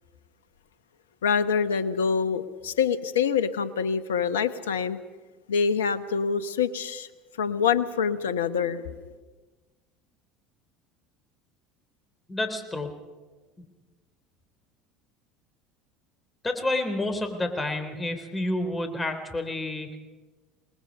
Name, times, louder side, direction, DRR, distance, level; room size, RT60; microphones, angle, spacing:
voice 1, 1.2-5.0 5.5-7.1 7.4-9.1, left 6 dB, 85° left, 13 dB, 1.0 m, -26 dB
voice 2, 12.3-12.9 16.4-20.0, left 2 dB, 20° left, 7 dB, 3.8 m, -29 dB
27.0 x 20.0 x 5.4 m, 1.3 s
hypercardioid pair, 75°, 0 cm